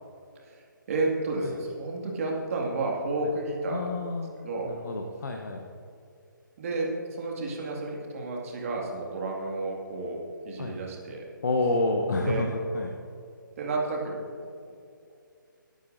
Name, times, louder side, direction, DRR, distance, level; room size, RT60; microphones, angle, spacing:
voice 1, 0.4-4.1 4.4-4.8 6.6-11.3 12.2-12.5 13.6-14.2, right 2 dB, 40° right, -2 dB, 2.1 m, -31 dB
voice 2, 3.7-4.3 4.7-5.6 10.6-10.8 11.4-12.5 12.7-12.9, left 2 dB, 55° left, 2 dB, 0.9 m, -28 dB
18.5 x 9.2 x 2.6 m, 2.4 s
figure-of-eight pair, 145°, 11 cm